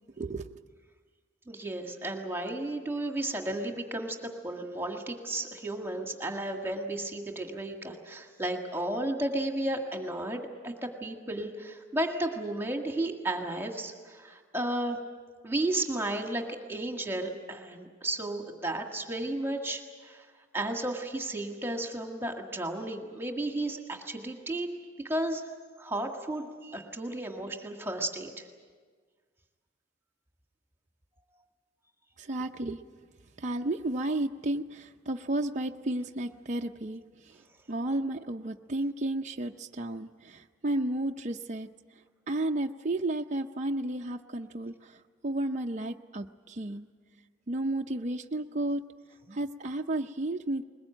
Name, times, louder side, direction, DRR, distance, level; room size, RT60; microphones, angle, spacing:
voice 1, 0.2-0.7 32.2-32.8 33.4-41.7 42.3-46.9 47.5-48.8 49.3-50.6, right 1 dB, 40° right, 2 dB, 0.6 m, -32 dB
voice 2, 1.5-4.2 4.4-15.0 15.4-20.3 20.5-24.7 25.0-25.4 25.8-28.5, right 1 dB, 15° right, 3 dB, 1.8 m, -33 dB
21.5 x 20.5 x 9.0 m, 1.5 s
head